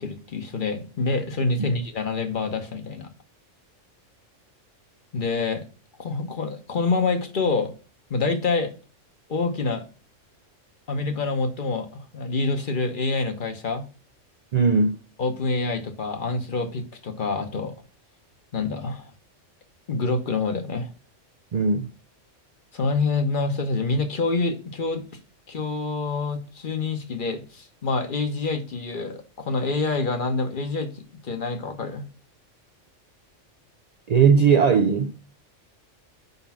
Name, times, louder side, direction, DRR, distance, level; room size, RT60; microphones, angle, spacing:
voice 1, 0.0-3.1 5.1-5.6 6.0-7.7 8.1-8.7 9.3-9.8 10.9-13.8 15.2-17.7 18.5-19.1 19.9-20.9 22.7-25.0 25.5-32.0, left 3 dB, 45° left, 1.0 m, -26 dB
voice 2, 14.5-15.0 21.5-21.9 34.1-35.2, right 5 dB, 80° right, 0.3 m, -19 dB
5.1 x 4.0 x 5.7 m
omnidirectional pair, 1.3 m